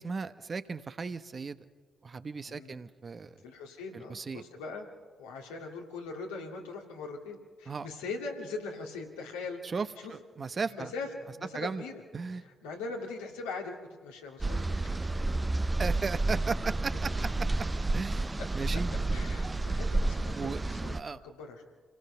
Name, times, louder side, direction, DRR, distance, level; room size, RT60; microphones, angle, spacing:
voice 1, 0.0-1.6 2.0-3.3 3.9-4.4 7.7-7.9 9.7-10.9 11.5-11.8 12.1-12.4 15.5-17.1 17.9-18.3 18.5-18.9 20.4-20.6 20.9-21.2, right 4 dB, 45° right, 11 dB, 1.0 m, -36 dB
voice 2, 2.5-2.8 3.4-4.9 5.2-12.0 12.4-15.8 18.4-18.5 19.1-21.6, left 3 dB, 80° left, 0 dB, 2.3 m, -41 dB
sound 1, 14.4-21.0, right 2 dB, 25° right, 0.7 m, -30 dB
27.5 x 18.0 x 5.6 m, 1.5 s
hypercardioid pair, 40°, 0 cm